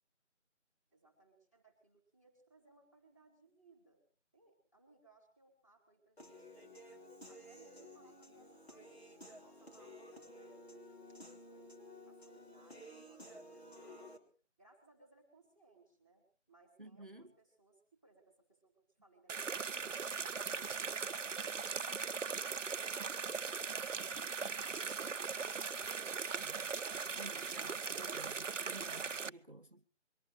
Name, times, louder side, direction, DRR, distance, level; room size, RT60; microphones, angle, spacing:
voice 1, 0.9-4.0 4.3-6.8 7.3-14.3 14.6-20.0, right 3 dB, 15° left, 4.4 m, -67 dB
Human voice / Piano, 6.2-14.2, left 1 dB, 55° left, 3.2 m, -54 dB
voice 2, 16.8-17.3 26.4-26.7 27.0-29.9, right 1 dB, 45° right, 1.0 m, -53 dB
sound 1, 19.3-29.3, right 5 dB, 85° right, 0.7 m, -39 dB
23.0 x 18.5 x 3.3 m
figure-of-eight pair, 180°, 36 cm